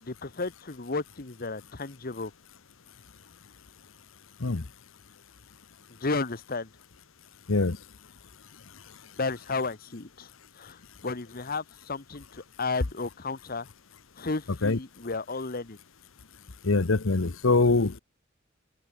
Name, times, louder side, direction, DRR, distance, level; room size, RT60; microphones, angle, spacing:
voice 1, 0.0-2.3 5.9-6.7 9.2-10.3 10.6-13.7 14.2-15.8, left 3 dB, 45° left, 1.1 m, -33 dB
voice 2, 16.6-17.9, left 3 dB, 75° left, 1.0 m, -23 dB
open air
head